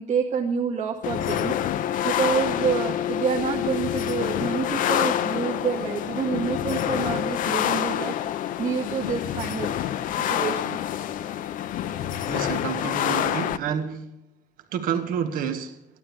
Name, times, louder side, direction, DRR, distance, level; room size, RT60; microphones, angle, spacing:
voice 1, 0.0-1.5 2.0-8.1 8.6-10.8, right 6 dB, 55° right, 1.9 m, -28 dB
sound 1, 1.0-13.6, left 11 dB, 70° left, 0.7 m, -27 dB
voice 2, 12.3-14.2 14.7-15.9, right 7 dB, 85° right, 1.7 m, -29 dB
14.5 x 12.0 x 7.1 m
cardioid pair, 165°, 14 cm